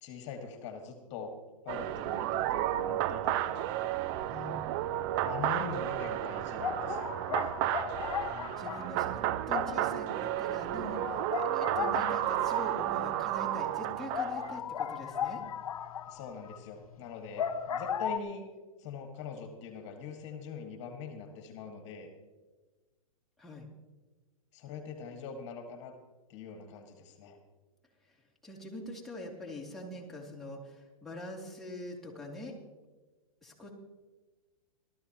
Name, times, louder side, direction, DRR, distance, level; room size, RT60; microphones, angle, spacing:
voice 1, 0.0-1.4 1.6-3.7 5.2-7.5 16.1-18.4 18.8-22.1 24.5-25.9 26.3-27.4, left 5 dB, 40° left, 4 dB, 1.9 m, -43 dB
sound 1, 1.7-14.6, right 13 dB, 40° right, 0.5 m, -32 dB
voice 2, 4.3-4.6 8.6-15.4 23.4-23.7 28.0-28.1 28.4-32.5 33.4-33.7, left 1 dB, ahead, -4 dB, 2.9 m, -43 dB
sound 2, 5.1-5.6 5.9-6.0 6.6-13.0 13.3-13.4 13.7-13.8 14.1-18.2, left 8 dB, 80° left, 1.0 m, -37 dB
19.0 x 13.0 x 3.0 m, 1.3 s
hypercardioid pair, 125°, 18 cm